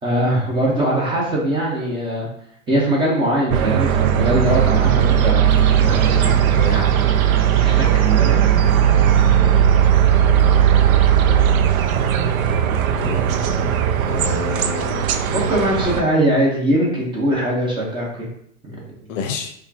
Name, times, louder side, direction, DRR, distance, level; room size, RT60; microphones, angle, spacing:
voice 1, 0.0-2.3 2.7-5.4 5.8-6.3 6.7-7.0 7.6-8.8 15.3-18.3, right 1 dB, 10° right, -4 dB, 1.0 m, -21 dB
sound 1, 3.5-16.0, right 9 dB, 90° right, 0.5 m, -17 dB
Microwave oven, 5.5-15.8, right 4 dB, 30° right, 0.4 m, -30 dB
voice 2, 12.6-13.3 14.1-15.2 19.1-19.5, left 6 dB, 65° left, 6 dB, 0.7 m, -29 dB
4.7 x 2.2 x 2.9 m, 0.68 s
supercardioid pair, 135°, 41 cm